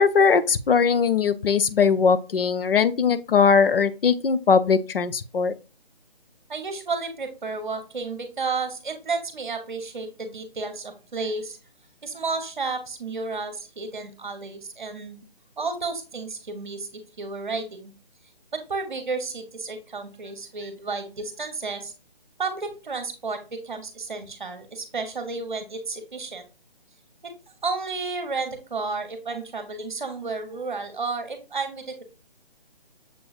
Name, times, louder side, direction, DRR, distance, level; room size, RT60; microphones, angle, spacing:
voice 1, 0.0-5.5, left 5 dB, 70° left, 14 dB, 0.5 m, -20 dB
voice 2, 6.5-11.6 12.0-15.2 15.6-16.9 17.2-17.9 18.5-21.9 22.4-26.5 27.6-32.0, right 4 dB, 50° right, 8 dB, 0.9 m, -32 dB
6.6 x 3.0 x 2.4 m, 0.33 s
hypercardioid pair, 180°, 30 cm